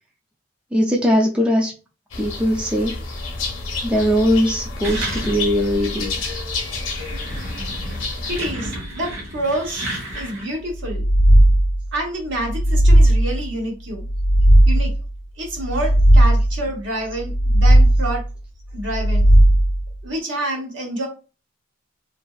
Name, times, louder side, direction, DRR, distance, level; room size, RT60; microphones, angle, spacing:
voice 1, 0.7-1.7 2.2-2.9 3.8-6.1, equal, 5° right, -2 dB, 0.3 m, -20 dB
sound 1, 2.1-8.5, left 3 dB, 80° left, 0.7 m, -29 dB
sound 2, 4.8-5.7 6.0-6.1 6.7-10.5, right 1 dB, 85° right, 1.1 m, -31 dB
voice 2, 8.3-9.8 10.1-11.0 11.9-14.0 14.7-14.9 15.4-18.2 18.7-19.2 20.0-21.1, right 1 dB, 65° right, 0 dB, 1.0 m, -27 dB
sound 3, 10.8-11.9 12.4-13.5 14.0-15.1 15.6-16.7 17.2-18.2 18.8-19.9, right 1 dB, 50° left, 0.5 m, -15 dB
2.9 x 2.5 x 2.3 m, 0.32 s
head